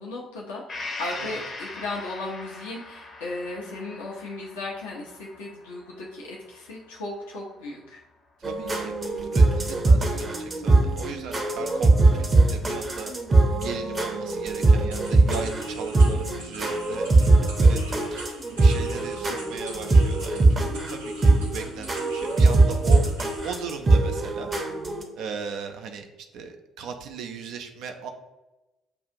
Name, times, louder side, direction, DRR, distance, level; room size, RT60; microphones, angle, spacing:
voice 1, 0.0-8.0, left 2 dB, 75° left, -4 dB, 0.7 m, -36 dB
Gong, 0.7-8.3 8.7-8.8, left 3 dB, 40° left, 0.8 m, -41 dB
sound 1, 8.4-25.0, right 2 dB, 30° right, 0.7 m, -21 dB
voice 2, 8.4-13.1 13.5-17.2 17.6-23.0 23.4-24.5 25.1-26.1 26.3-28.1, right 5 dB, 60° right, 5 dB, 0.4 m, -37 dB
sound 2, 14.9-23.6, right 2 dB, 85° right, 0.8 m, -43 dB
6.7 x 2.4 x 2.7 m, 1.0 s
figure-of-eight pair, 50°, 0 cm